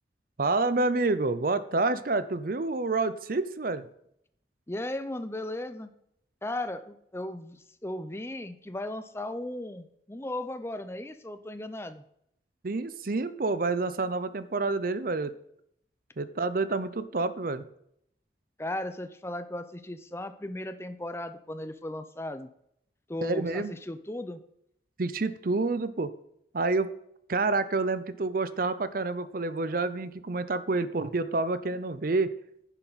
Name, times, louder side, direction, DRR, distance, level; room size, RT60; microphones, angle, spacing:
voice 1, 0.4-3.9 12.6-15.4 16.2-17.6 23.2-23.8 25.0-26.1 26.5-26.9 27.3-32.3, right 3 dB, 50° right, 14 dB, 0.6 m, -28 dB
voice 2, 4.7-5.9 6.4-12.0 18.6-22.5 23.1-24.4, left 1 dB, 15° left, 10 dB, 0.7 m, -36 dB
10.5 x 9.9 x 4.1 m, 0.74 s
head